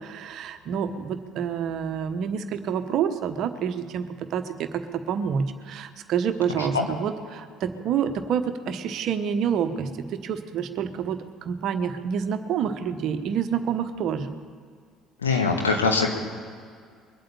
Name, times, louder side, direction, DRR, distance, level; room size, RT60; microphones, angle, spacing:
voice 1, 0.0-4.7 5.1-14.3, right 7 dB, 55° right, 9 dB, 1.2 m, -28 dB
voice 2, 15.2-16.1, left 4 dB, 85° left, 2 dB, 1.6 m, -23 dB
22.0 x 8.9 x 7.2 m, 2.1 s
figure-of-eight pair, 55°, 0 cm